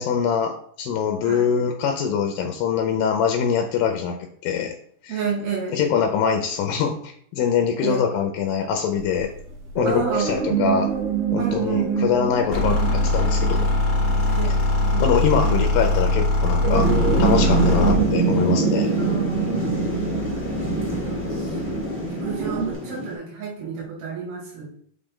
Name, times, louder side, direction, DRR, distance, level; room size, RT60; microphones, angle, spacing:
voice 1, 0.0-4.2 4.4-4.7 5.0-5.2 5.7-9.3 9.8-10.9 11.3-13.7 15.0-16.8 17.2-18.9, left 7 dB, 80° left, 4 dB, 2.3 m, -23 dB
voice 2, 5.1-5.8 7.8-8.1 9.8-10.5 11.4-12.3 12.7-13.1 14.2-15.0 15.4-15.8 16.6-17.0 17.6-18.1 18.9-19.9 20.5-21.8 22.1-24.7, right 6 dB, 90° right, -3 dB, 3.7 m, -31 dB
sound 1, 8.9-22.7, right 7 dB, 65° right, 1.7 m, -27 dB
sound 2, 12.5-18.1, left 2 dB, 35° left, 1.4 m, -21 dB
Thunder / Rain, 16.7-23.1, equal, 15° right, 0.4 m, -26 dB
6.6 x 5.1 x 3.7 m, 0.63 s
omnidirectional pair, 4.2 m